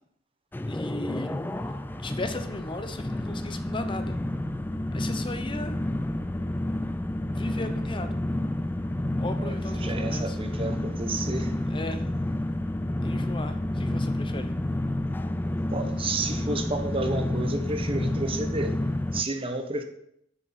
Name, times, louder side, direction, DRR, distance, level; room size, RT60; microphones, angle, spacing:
sound 1, 0.5-19.2, left 1 dB, 10° left, 0.3 m, -30 dB
voice 1, 0.7-1.3 2.0-4.2 4.9-5.8 7.3-8.2 9.2-10.4 11.7-12.1 13.0-14.5, left 2 dB, 25° left, 8 dB, 0.8 m, -36 dB
voice 2, 9.4-11.5 15.7-18.7 19.1-19.8, right 2 dB, 30° right, 6 dB, 0.9 m, -31 dB
7.5 x 6.4 x 5.8 m, 0.74 s
head